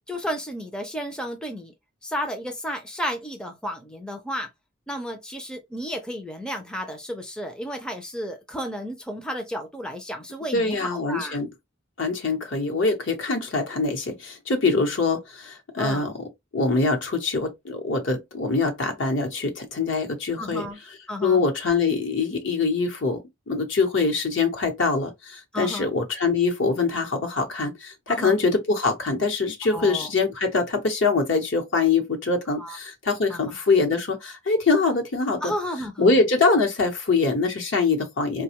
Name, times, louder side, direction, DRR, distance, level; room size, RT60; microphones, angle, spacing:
voice 1, 0.1-1.7 2.0-4.5 4.9-11.4 15.8-16.1 20.4-20.8 21.1-21.4 25.5-25.9 28.1-28.4 29.7-30.1 32.6-32.8 33.3-33.6 35.4-36.2, equal, 5° left, 0.4 m, -32 dB
voice 2, 10.5-11.5 12.0-16.2 16.5-20.7 21.2-23.2 23.5-35.5 36.0-38.4, left 3 dB, 65° left, 1.0 m, -24 dB
4.2 x 2.2 x 2.8 m
head